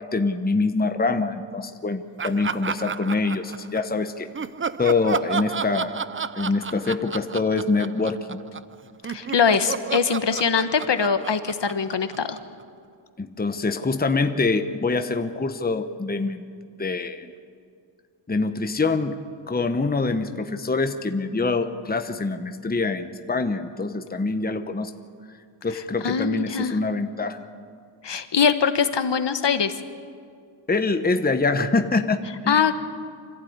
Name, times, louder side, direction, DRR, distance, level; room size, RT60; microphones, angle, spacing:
voice 1, 0.0-4.3 4.8-6.0 6.3-8.4 13.2-16.4 16.8-17.3 18.3-24.9 25.6-27.4 30.7-32.7, left 3 dB, 20° left, 8 dB, 1.0 m, -25 dB
Laughter, 2.2-3.9 4.3-8.7 9.0-12.6, right 6 dB, 25° right, 0.5 m, -32 dB
voice 2, 9.1-12.4 26.0-26.8 28.0-29.8 32.5-32.7, left 6 dB, 60° left, 10 dB, 1.2 m, -22 dB
25.5 x 15.0 x 9.5 m, 2.2 s
wide cardioid pair, 105°, 49 cm